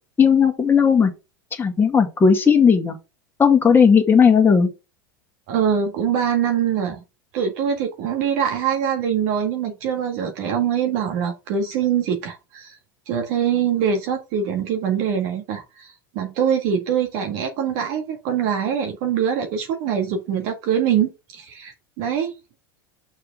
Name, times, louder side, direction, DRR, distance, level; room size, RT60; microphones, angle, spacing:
voice 1, 0.2-1.1 1.6-3.0 3.4-4.7, left 6 dB, 20° left, 2.0 m, -15 dB
voice 2, 5.5-7.0 7.3-12.8 13.1-22.3, right 8 dB, 55° right, 1.7 m, -23 dB
6.7 x 4.8 x 3.9 m
hypercardioid pair, 95°, 12 cm